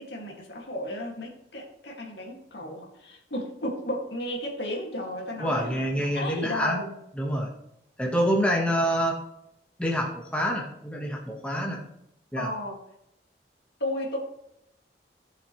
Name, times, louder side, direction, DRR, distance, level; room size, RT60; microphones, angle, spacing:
voice 1, 0.0-6.9 12.4-12.8 13.8-14.2, left 1 dB, 75° left, 0 dB, 2.2 m, -34 dB
voice 2, 5.4-6.8 7.2-7.5 8.0-9.2 9.8-11.8 12.3-12.5, equal, 5° left, -1 dB, 1.4 m, -26 dB
16.0 x 7.1 x 3.2 m, 0.80 s
head